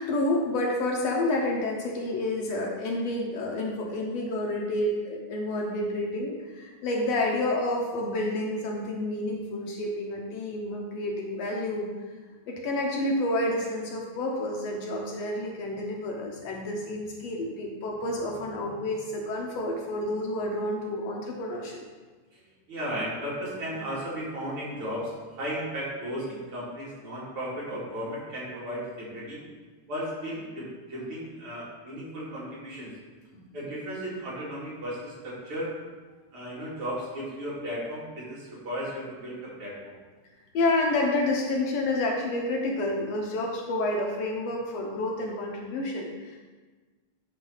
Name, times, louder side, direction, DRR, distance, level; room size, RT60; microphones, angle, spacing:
voice 1, 0.0-11.9 12.5-21.8 40.5-46.4, left 1 dB, 70° left, 0 dB, 1.8 m, -29 dB
voice 2, 22.7-29.4 29.9-32.9 33.5-35.7 36.3-39.9, equal, 50° right, -7 dB, 3.0 m, -35 dB
9.1 x 3.8 x 5.4 m, 1.4 s
omnidirectional pair, 3.3 m